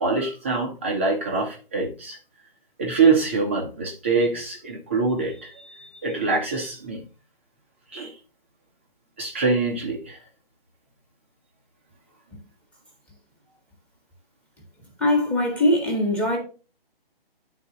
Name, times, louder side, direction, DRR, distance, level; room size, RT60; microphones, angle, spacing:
voice 1, 0.0-2.2 2.8-7.0 7.9-8.2 9.2-10.2, right 4 dB, 15° right, 0.5 m, -24 dB
voice 2, 15.0-16.4, left 1 dB, 5° left, 1.0 m, -21 dB
9.9 x 3.8 x 2.7 m
figure-of-eight pair, 150°, 30 cm